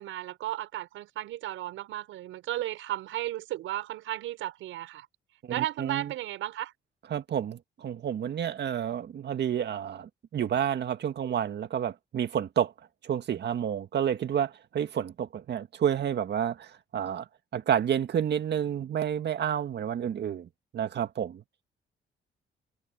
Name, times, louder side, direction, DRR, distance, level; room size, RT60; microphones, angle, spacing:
voice 1, 0.0-5.1 5.5-6.7, right 14 dB, 90° right, 6.1 m, -34 dB
voice 2, 5.4-6.1 7.1-12.7 13.0-17.3 17.5-21.4, right 9 dB, 60° right, 1.9 m, -30 dB
cardioid pair, 90°, 20 cm